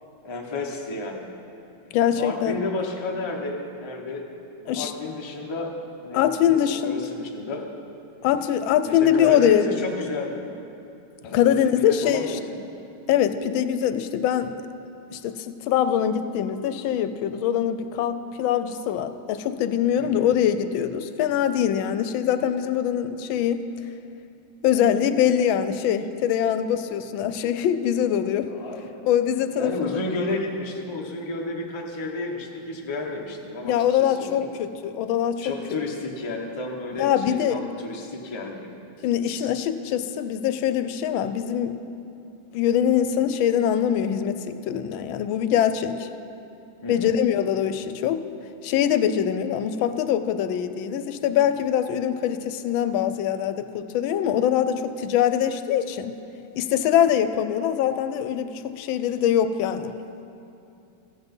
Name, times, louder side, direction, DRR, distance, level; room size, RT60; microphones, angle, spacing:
voice 1, 0.2-1.3 2.2-4.3 4.6-5.7 6.0-7.6 8.8-10.6 11.2-12.6 20.0-20.3 28.5-29.0 29.5-34.5 35.4-38.8 39.2-39.5 46.8-47.2, left 2 dB, 25° left, 0 dB, 0.5 m, -32 dB
voice 2, 1.9-2.6 4.7-4.9 6.1-7.0 8.2-9.7 11.3-12.4 13.1-14.6 15.1-23.6 24.6-28.5 29.1-30.0 33.6-35.5 37.0-37.6 39.0-41.8 42.5-46.1 46.9-48.2 48.6-56.2 56.6-60.0, left 9 dB, 85° left, 11 dB, 1.3 m, -23 dB
15.0 x 8.1 x 5.3 m, 2.7 s
omnidirectional pair, 2.2 m